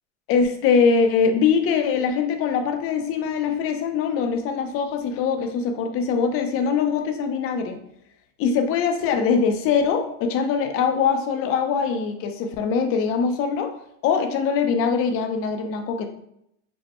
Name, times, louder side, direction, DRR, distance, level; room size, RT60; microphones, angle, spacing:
voice 1, 0.3-7.8 8.4-13.7 14.0-16.1, left 6 dB, 40° left, 6 dB, 0.5 m, -22 dB
5.2 x 2.1 x 2.9 m, 0.77 s
supercardioid pair, 140°, 37 cm